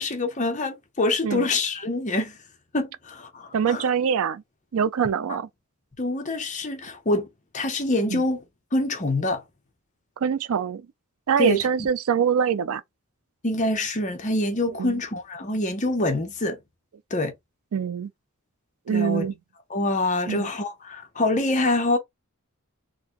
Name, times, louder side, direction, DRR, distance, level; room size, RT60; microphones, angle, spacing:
voice 1, 0.0-2.4 2.7-3.9 6.0-7.3 7.5-8.4 8.7-9.4 11.4-11.9 13.4-16.6 17.1-17.3 18.9-19.3 19.7-22.0, left 2 dB, 35° left, 0.8 m, -25 dB
voice 2, 3.5-4.4 4.7-5.5 10.2-10.8 11.3-12.8 14.8-14.9 17.7-18.1 18.9-19.3 20.3-20.5, right 7 dB, 80° right, 0.4 m, -24 dB
3.8 x 2.2 x 2.9 m
head